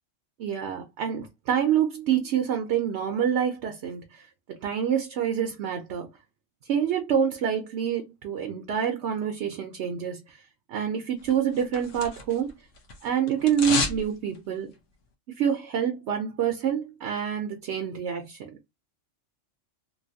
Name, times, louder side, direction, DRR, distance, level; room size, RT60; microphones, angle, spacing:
voice 1, 0.4-4.2 4.5-6.1 6.7-10.4 10.7-12.5 13.0-14.7 15.4-18.5, right 8 dB, 65° right, 0.9 m, -27 dB
sound 1, 11.3-12.5 12.8-14.0 14.3-14.4, left 4 dB, 75° left, 1.1 m, -31 dB
3.1 x 2.6 x 2.6 m
omnidirectional pair, 1.3 m